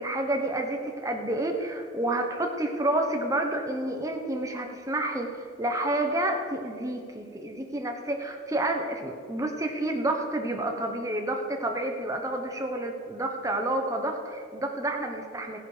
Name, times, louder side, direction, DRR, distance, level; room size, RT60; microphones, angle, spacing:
voice 1, 0.0-5.3 5.6-15.6, right 1 dB, 15° right, 3 dB, 1.1 m, -29 dB
15.5 x 9.8 x 5.1 m, 2.3 s
head